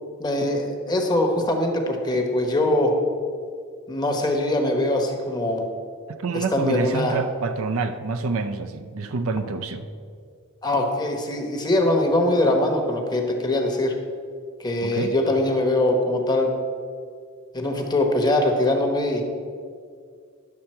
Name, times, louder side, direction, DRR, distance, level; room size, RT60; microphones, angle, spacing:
voice 1, 0.2-2.9 3.9-5.6 6.3-7.2 10.6-13.9 14.6-16.6 17.5-19.2, left 1 dB, 20° left, 2 dB, 1.1 m, -22 dB
voice 2, 6.2-9.9 14.8-15.1, right 4 dB, 65° right, 8 dB, 0.5 m, -27 dB
10.5 x 6.9 x 4.4 m, 2.2 s
head